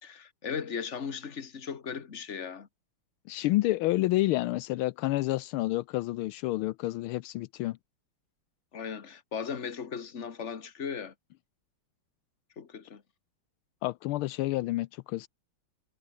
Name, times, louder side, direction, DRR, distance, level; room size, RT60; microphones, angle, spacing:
voice 1, 0.0-2.7 8.7-11.1 12.6-13.0, left 6 dB, 35° left, 1.8 m, -37 dB
voice 2, 3.3-7.8 13.8-15.3, left 17 dB, 80° left, 1.4 m, -29 dB
omnidirectional pair, 2.3 m